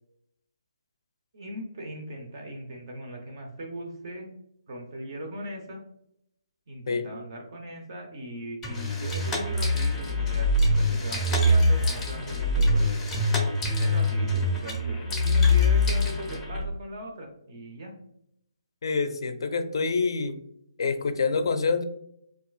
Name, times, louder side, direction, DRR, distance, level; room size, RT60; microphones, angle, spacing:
voice 1, 1.3-4.3 4.7-5.8 6.7-12.9 13.8-17.9, equal, 50° right, 1 dB, 0.7 m, -39 dB
sound 1, 8.6-16.6, left 1 dB, 10° left, 0.5 m, -24 dB
voice 2, 18.8-20.4 20.8-21.8, left 4 dB, 60° left, 9 dB, 0.4 m, -26 dB
3.7 x 2.4 x 2.3 m, 0.74 s
figure-of-eight pair, 145°, 3 cm